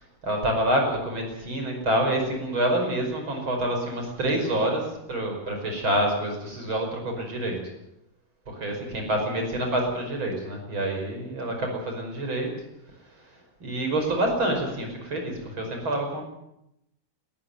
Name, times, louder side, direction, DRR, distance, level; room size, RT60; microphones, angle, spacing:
voice 1, 0.2-7.6 8.5-12.5 13.3-13.4 13.6-16.2, right 1 dB, 30° right, 3 dB, 6.0 m, -27 dB
21.0 x 14.0 x 9.4 m, 0.83 s
omnidirectional pair, 4.3 m